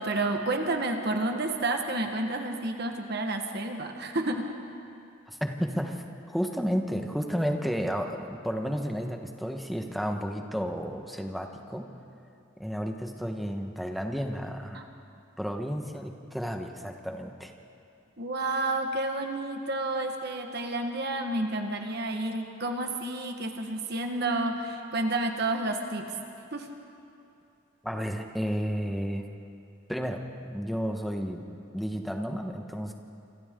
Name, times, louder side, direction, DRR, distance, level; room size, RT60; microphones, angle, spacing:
voice 1, 0.0-4.5 14.7-14.9 18.2-26.1 26.5-26.7, right 2 dB, 50° right, 4 dB, 1.5 m, -30 dB
voice 2, 5.3-11.9 12.6-14.8 15.4-17.5 27.8-29.3 29.9-31.4 31.7-32.9, equal, ahead, 3 dB, 1.3 m, -32 dB
27.5 x 26.0 x 3.8 m, 2.7 s
head